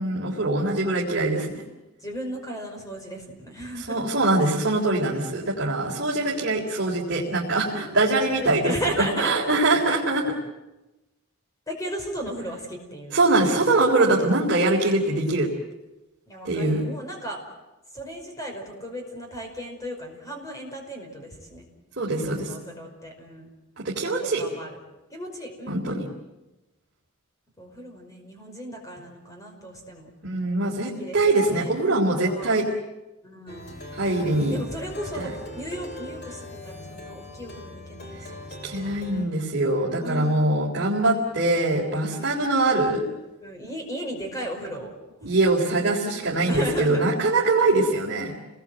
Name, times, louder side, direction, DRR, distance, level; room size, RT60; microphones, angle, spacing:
voice 1, 0.0-1.6 3.8-8.7 9.0-10.2 13.1-15.5 16.4-16.8 22.0-22.5 23.8-24.4 25.7-26.1 30.2-32.7 33.9-34.6 35.2-35.3 38.6-43.0 45.2-48.4, right 2 dB, 50° right, -4 dB, 3.7 m, -23 dB
voice 2, 2.0-4.0 5.0-6.2 7.7-8.0 8.4-9.3 9.9-10.0 11.7-13.2 16.3-17.4 17.9-21.6 22.4-23.5 24.0-24.8 25.1-25.9 27.6-30.1 31.0-31.7 32.2-32.6 33.2-33.8 34.5-38.6 40.0-40.5 42.1-42.3 43.4-44.9 46.5-47.1, equal, 15° left, 2 dB, 5.4 m, -36 dB
Plucked string instrument, 33.5-39.3, left 1 dB, 45° left, 3.6 m, -40 dB
30.0 x 20.5 x 7.8 m, 1.0 s
head